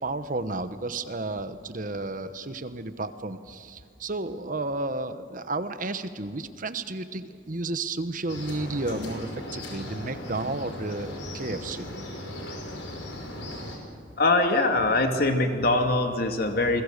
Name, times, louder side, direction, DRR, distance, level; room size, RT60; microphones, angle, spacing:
voice 1, 0.0-11.9, right 2 dB, 45° right, 11 dB, 1.1 m, -32 dB
sound 1, 8.3-13.8, left 1 dB, 80° left, 5.3 m, -37 dB
voice 2, 14.2-16.8, left 2 dB, 55° left, 5 dB, 2.4 m, -23 dB
29.5 x 21.5 x 6.7 m, 2.3 s
head